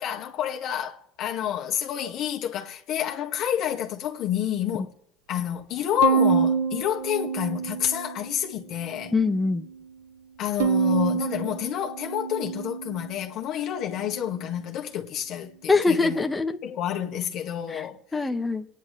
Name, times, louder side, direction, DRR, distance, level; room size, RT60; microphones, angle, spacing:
voice 1, 0.0-4.9 5.3-9.1 10.4-16.3 16.6-18.0, left 10 dB, 60° left, 1.9 m, -29 dB
Bowed string instrument, 6.0-8.4 8.8-9.6 10.6-13.1, right 7 dB, 85° right, 0.8 m, -27 dB
voice 2, 9.1-9.6 15.7-16.6 17.7-17.8 18.1-18.6, left 3 dB, 15° left, 1.4 m, -23 dB
26.5 x 10.0 x 3.4 m
supercardioid pair, 90°, 0 cm